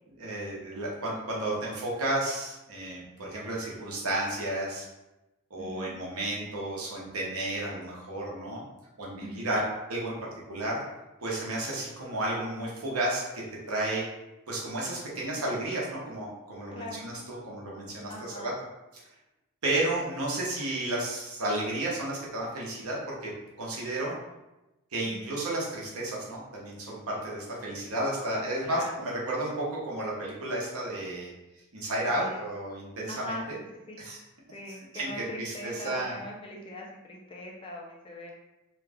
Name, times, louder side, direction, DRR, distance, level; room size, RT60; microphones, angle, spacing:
voice 1, 0.2-4.9 5.5-8.6 9.0-9.6 9.9-10.8 11.2-14.1 14.5-18.1 18.4-18.5 19.6-23.3 23.6-24.2 24.9-31.3 31.7-33.6 34.0-34.2 34.9-35.1 35.4-36.2, right 1 dB, 75° right, -4 dB, 1.0 m, -32 dB
voice 2, 5.6-6.0 9.2-9.5 16.7-17.0 18.1-18.5 25.1-25.3 28.6-28.9 32.1-32.4 33.1-33.4 33.9-34.0 34.5-38.3, left 1 dB, 25° left, -2 dB, 0.5 m, -41 dB
3.0 x 2.4 x 3.4 m, 0.99 s
head